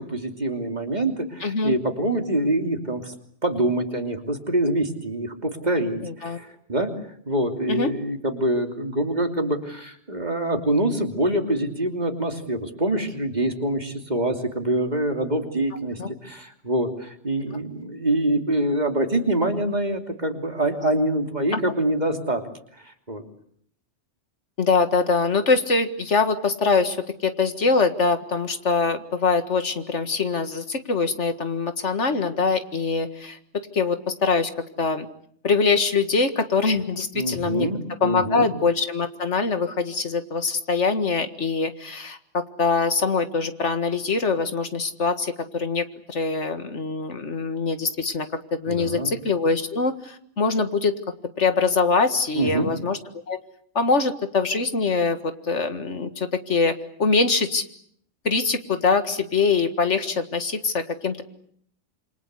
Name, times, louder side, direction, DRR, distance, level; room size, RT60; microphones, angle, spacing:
voice 1, 0.0-3.1 3.4-22.5 22.8-23.2 37.1-38.5 48.7-49.1 52.3-52.7, right 1 dB, 40° right, 4 dB, 3.1 m, -25 dB
voice 2, 1.4-1.7 6.0-6.4 7.7-7.9 16.0-16.1 21.5-21.6 24.6-27.0 27.2-34.5 34.8-35.1 35.4-37.7 38.0-51.0 51.4-53.0 53.3-53.4 53.8-57.6 58.2-61.2, left 4 dB, 85° left, 9 dB, 2.1 m, -23 dB
27.5 x 25.5 x 8.2 m, 0.66 s
omnidirectional pair, 1.2 m